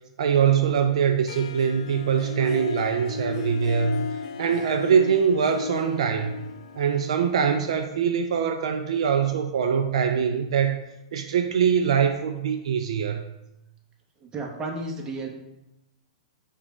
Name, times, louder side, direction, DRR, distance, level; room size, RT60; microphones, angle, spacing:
voice 1, 0.2-6.4 6.8-10.8 11.1-13.2, right 7 dB, 65° right, 6 dB, 0.3 m, -23 dB
Harp, 1.3-8.2, left 5 dB, 60° left, 0.4 m, -35 dB
voice 2, 14.2-15.3, right 2 dB, 20° right, 1 dB, 0.8 m, -33 dB
4.8 x 2.3 x 4.1 m, 0.93 s
hypercardioid pair, 110°, 3 cm